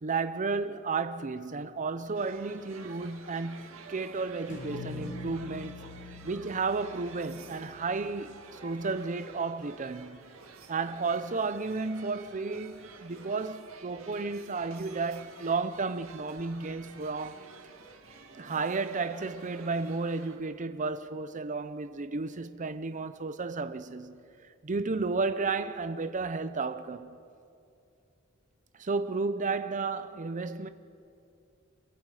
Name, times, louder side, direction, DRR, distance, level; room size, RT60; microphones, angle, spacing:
voice 1, 0.0-5.8 6.2-10.3 10.7-17.4 18.4-24.2 24.6-27.2 28.8-30.7, right 4 dB, 35° right, 0.6 m, -33 dB
sound 1, 2.1-20.4, right 4 dB, 75° right, 2.0 m, -50 dB
sound 2, 4.5-8.7, left 3 dB, 60° left, 7.8 m, -44 dB
27.5 x 23.0 x 4.9 m
head